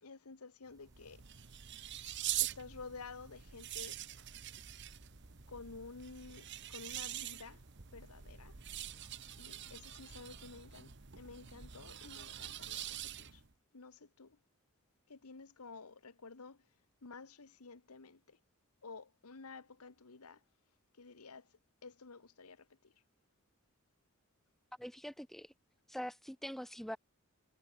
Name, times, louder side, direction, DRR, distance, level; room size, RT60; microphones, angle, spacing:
voice 1, 0.0-1.4 2.4-4.0 5.5-7.6 7.9-8.6 9.4-13.4 13.7-14.4 15.1-16.6 17.0-18.4 18.8-20.4 20.9-22.9, left 4 dB, 90° left, 1.2 m, -52 dB
sound 1, 0.6-10.6, right 1 dB, 15° right, 3.2 m, -69 dB
sound 2, 0.8-13.5, right 12 dB, 50° right, 1.2 m, -44 dB
voice 2, 24.8-25.5 25.9-27.0, equal, ahead, 0.5 m, -44 dB
head